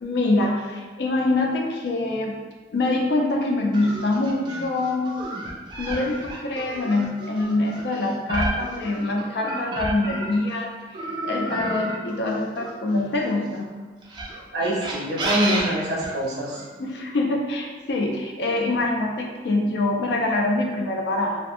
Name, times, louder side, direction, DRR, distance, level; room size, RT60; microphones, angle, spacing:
voice 1, 0.0-2.4 2.7-5.1 5.8-11.0 11.2-13.7 16.8-21.4, left 2 dB, 70° left, 0 dB, 0.4 m, -24 dB
sound 1, 3.7-10.5 10.9-13.3 14.0-16.6, right 2 dB, 25° right, 0.4 m, -31 dB
voice 2, 14.5-16.6, equal, 65° right, -4 dB, 0.6 m, -25 dB
2.8 x 2.0 x 2.5 m, 1.3 s
head